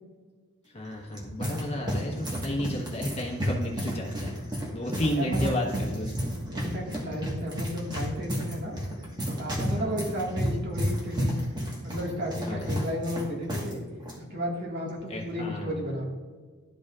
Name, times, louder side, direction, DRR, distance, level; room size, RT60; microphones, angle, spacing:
voice 1, 0.7-4.3 4.7-6.3 9.7-10.0 12.4-12.8 15.1-16.0, left 1 dB, 25° left, -1 dB, 1.3 m, -32 dB
sound 1, 0.8-13.7 14.0-14.2 14.9-15.2, equal, 20° right, 1.4 m, -32 dB
voice 2, 5.2-5.5 6.5-8.8 9.3-11.5 11.8-13.8 14.2-16.0, equal, 50° right, -2 dB, 1.8 m, -33 dB
12.5 x 5.2 x 2.4 m, 1.5 s
head